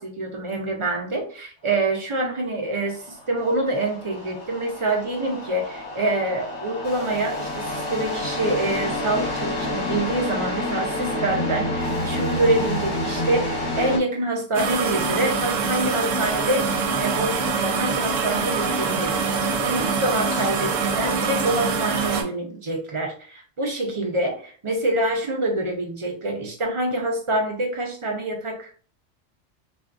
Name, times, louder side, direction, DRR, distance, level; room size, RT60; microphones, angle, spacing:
voice 1, 0.0-28.7, right 2 dB, 40° right, 1 dB, 0.4 m, -26 dB
sound 1, 2.9-14.0, left 1 dB, 45° left, 1.1 m, -29 dB
sound 2, 14.5-22.2, right 4 dB, 80° right, 1.0 m, -24 dB
3.4 x 2.4 x 2.4 m, 0.42 s
omnidirectional pair, 1.3 m